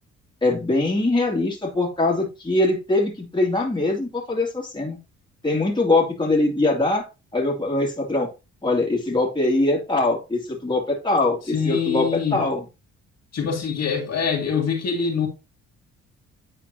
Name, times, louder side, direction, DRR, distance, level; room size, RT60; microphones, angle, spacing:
voice 1, 0.4-5.0 5.4-7.1 7.3-8.3 8.6-12.6, left 2 dB, 15° left, 2.5 m, -22 dB
voice 2, 11.5-12.4 13.3-15.3, left 6 dB, 60° left, 2.3 m, -24 dB
9.4 x 4.5 x 2.9 m
cardioid pair, 90°, 30 cm